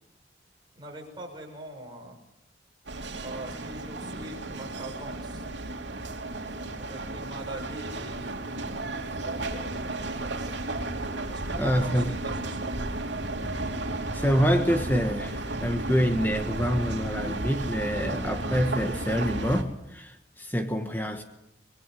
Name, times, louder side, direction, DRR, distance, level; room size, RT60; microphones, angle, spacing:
voice 1, 0.7-2.2 3.2-5.4 6.8-8.8 9.1-9.7 10.0-10.6 11.3-13.0, right 1 dB, 25° right, 1 dB, 6.4 m, -43 dB
sound 1, 2.9-19.6, right 2 dB, 85° right, 3.2 m, -33 dB
voice 2, 11.5-12.1 14.1-21.2, equal, 10° left, 6 dB, 1.5 m, -26 dB
26.0 x 21.0 x 9.3 m, 0.83 s
head